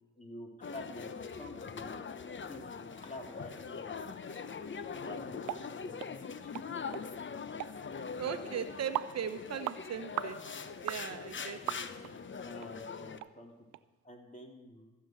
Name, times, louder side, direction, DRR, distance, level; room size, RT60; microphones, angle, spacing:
voice 1, 0.1-4.1 5.0-6.5 11.6-12.2 12.4-13.5 14.0-14.9, left 1 dB, 25° left, 1 dB, 3.2 m, -49 dB
sound 1, 0.6-13.2, left 5 dB, 40° left, 0.9 m, -42 dB
sound 2, 5.5-5.6 6.0-6.1 6.5-6.7 6.9-7.0 7.6-7.7 8.3-8.4 8.9-9.1 9.6-9.8 10.2-10.3 10.9-11.0 11.7-12.1 12.6-12.7 13.2-13.3 13.7-13.8, right 15 dB, 75° right, 0.5 m, -37 dB
voice 2, 8.2-10.4 10.8-11.9, right 7 dB, 60° right, 9 dB, 0.9 m, -38 dB
15.0 x 7.0 x 7.8 m, 1.2 s
supercardioid pair, 50°, 30 cm